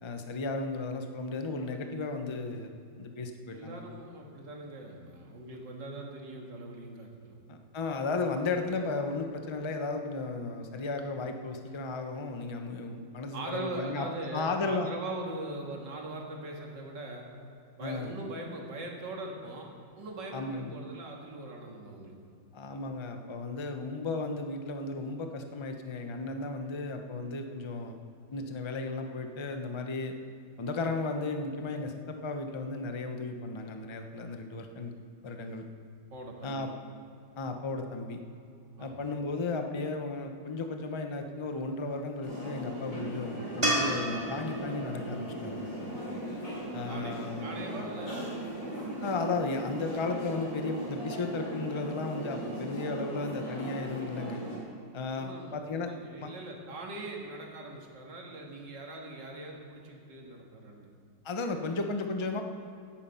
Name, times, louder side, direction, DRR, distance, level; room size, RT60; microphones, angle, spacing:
voice 1, 0.0-2.7 3.0-3.8 7.5-14.1 14.3-14.9 17.8-18.1 20.3-20.7 22.5-28.0 28.3-30.1 30.6-34.9 35.2-35.6 36.4-36.7 37.4-38.2 38.8-45.7 46.7-47.4 49.0-54.4 54.9-55.9 56.2-56.3 61.2-62.4, left 3 dB, 25° left, 5 dB, 0.6 m, -34 dB
voice 2, 3.5-7.4 13.3-17.2 17.8-19.7 20.0-22.2 36.1-36.7 38.8-39.0 46.9-47.1 47.4-48.4 55.1-60.9, right 2 dB, 70° right, 0 dB, 2.6 m, -41 dB
sound 1, 42.2-54.6, right 1 dB, 45° left, 4.0 m, -38 dB
sound 2, 43.6-46.9 50.1-50.2, right 1 dB, 15° right, 2.0 m, -33 dB
16.5 x 8.9 x 5.7 m, 2.5 s
omnidirectional pair, 2.0 m